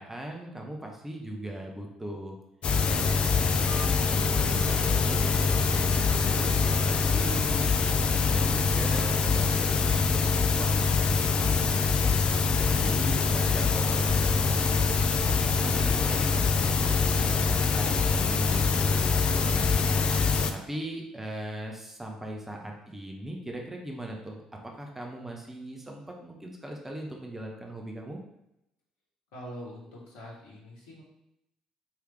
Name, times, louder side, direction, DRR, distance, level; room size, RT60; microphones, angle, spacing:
voice 1, 0.0-2.4 2.9-7.8 8.3-12.2 12.6-15.1 15.6-16.4 16.9-20.1 20.5-24.4 24.8-28.2, right 1 dB, 10° right, 1 dB, 0.8 m, -39 dB
sound 1, 2.6-20.5, left 5 dB, 45° left, 0.4 m, -24 dB
Wind instrument woodwind instrument, 3.6-7.3, right 4 dB, 40° right, 0.9 m, -44 dB
sound 2, 13.2-20.5, left 1 dB, 20° left, 1.1 m, -45 dB
voice 2, 29.3-31.0, equal, 70° left, -3 dB, 1.1 m, -43 dB
4.7 x 3.3 x 3.3 m, 0.83 s
figure-of-eight pair, 50°, 3 cm